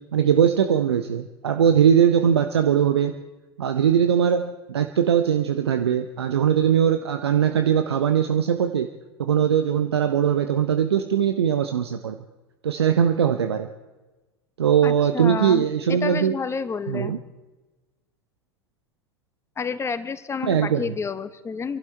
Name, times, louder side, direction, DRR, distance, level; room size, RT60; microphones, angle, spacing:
voice 1, 0.1-3.1 3.6-8.9 9.2-12.2 12.6-13.7 14.6-16.4 16.9-17.2 20.4-20.8, right 8 dB, 75° right, 7 dB, 0.7 m, -20 dB
voice 2, 14.8-17.1 19.6-21.8, left 5 dB, 20° left, 12 dB, 1.0 m, -30 dB
26.5 x 12.0 x 4.5 m, 1.1 s
figure-of-eight pair, 80°, 14 cm